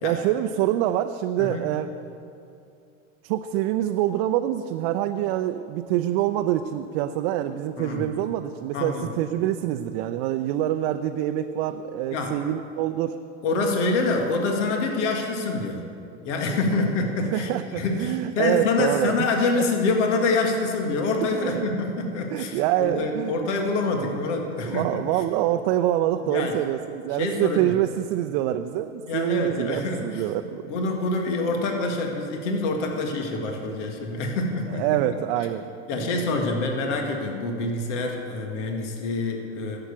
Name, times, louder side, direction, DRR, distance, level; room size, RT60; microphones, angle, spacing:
voice 1, 0.0-1.9 3.2-13.2 17.3-19.3 19.6-19.7 21.3-21.7 22.3-23.3 24.6-30.6 34.7-36.1, right 12 dB, 50° right, 7 dB, 0.6 m, -26 dB
voice 2, 8.7-9.1 12.1-12.3 13.4-15.8 16.2-25.0 26.3-26.5 27.2-27.8 29.0-30.3 30.7-34.8 35.9-39.8, left 3 dB, 65° left, 3 dB, 1.9 m, -26 dB
11.5 x 7.9 x 8.4 m, 2.5 s
hypercardioid pair, 100°, 38 cm